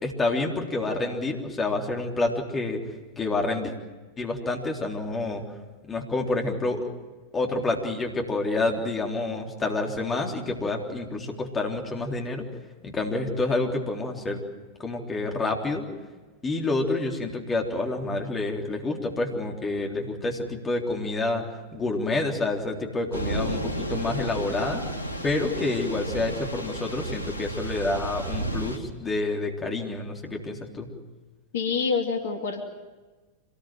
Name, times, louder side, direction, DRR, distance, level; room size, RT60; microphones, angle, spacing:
voice 1, 0.0-2.8 3.2-3.7 4.2-5.4 5.9-6.8 7.3-12.4 12.8-14.4 14.8-15.9 16.4-21.5 21.7-24.8 25.2-30.9, left 2 dB, 20° left, 1 dB, 3.6 m, -28 dB
Thunder / Rain, 23.1-28.8, right 1 dB, 80° right, 2.4 m, -32 dB
voice 2, 31.5-32.6, left 5 dB, 60° left, 4 dB, 2.7 m, -26 dB
26.0 x 19.5 x 7.6 m, 1.3 s
figure-of-eight pair, 90°, 0 cm